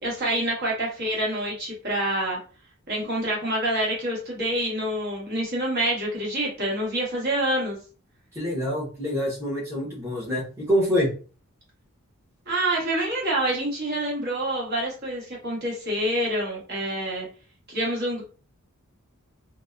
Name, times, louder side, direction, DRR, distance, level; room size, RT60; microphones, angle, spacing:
voice 1, 0.0-2.4 2.9-7.8 12.5-17.3 17.7-18.2, right 1 dB, 45° right, -3 dB, 1.2 m, -27 dB
voice 2, 8.3-11.1, equal, 10° right, -6 dB, 0.9 m, -26 dB
2.8 x 2.2 x 2.3 m, 0.37 s
head